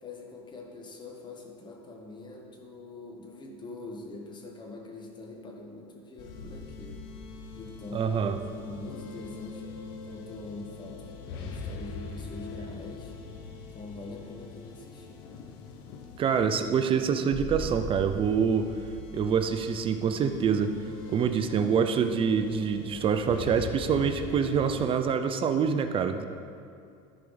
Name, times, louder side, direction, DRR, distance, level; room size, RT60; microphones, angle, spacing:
voice 1, 0.0-7.1 7.6-9.6 10.0-13.1 13.7-15.2, left 2 dB, 25° left, 1 dB, 1.4 m, -44 dB
sound 1, 6.2-24.9, left 3 dB, 70° left, 1.0 m, -41 dB
voice 2, 7.9-8.4 16.2-18.7 19.1-20.7 21.1-26.3, right 7 dB, 30° right, 8 dB, 0.5 m, -26 dB
14.0 x 4.7 x 4.0 m, 2.5 s
supercardioid pair, 120°, 17 cm